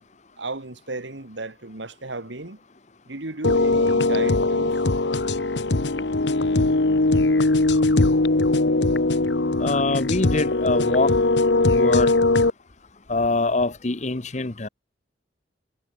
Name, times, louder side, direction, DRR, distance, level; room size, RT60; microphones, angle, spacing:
voice 1, 0.4-2.6 3.1-4.8 8.3-8.4, right 2 dB, 80° right, 2.4 m, -34 dB
sound 1, 3.4-12.5, left 2 dB, 70° left, 1.2 m, -20 dB
voice 2, 9.6-11.1 11.8-12.1 13.1-14.7, left 3 dB, 40° left, 1.1 m, -24 dB
head